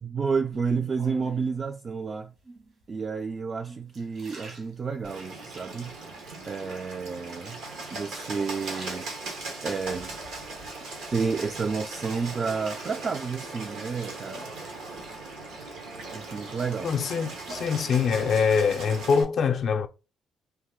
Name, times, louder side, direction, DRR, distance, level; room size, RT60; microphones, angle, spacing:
voice 1, 0.0-2.3 2.9-6.0 6.5-7.6 7.9-9.1 9.6-10.1 11.1-14.5 16.1-16.9, right 5 dB, 40° right, 0.3 m, -30 dB
sound 1, 0.5-1.6 2.4-2.9 3.4-5.4 5.9-6.5 7.3-7.9 8.3-9.6 10.1-11.3 11.7-13.3 14.7-15.3 15.8-18.4 18.6-19.1, right 2 dB, 65° right, 1.4 m, -47 dB
Bird, 5.0-19.2, right 2 dB, 85° right, 1.2 m, -39 dB
voice 2, 16.8-19.9, left 6 dB, 60° left, 0.4 m, -24 dB
3.2 x 2.5 x 3.5 m
cardioid pair, 90°, 0 cm